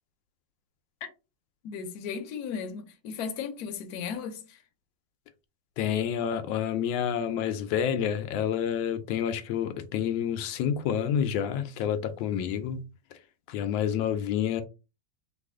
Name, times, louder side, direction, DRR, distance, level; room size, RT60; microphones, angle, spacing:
voice 1, 1.6-4.6, left 6 dB, 65° left, 1.0 m, -36 dB
voice 2, 5.8-12.8 13.5-14.6, left 9 dB, 90° left, 1.3 m, -28 dB
3.3 x 2.4 x 3.5 m
omnidirectional pair, 2.0 m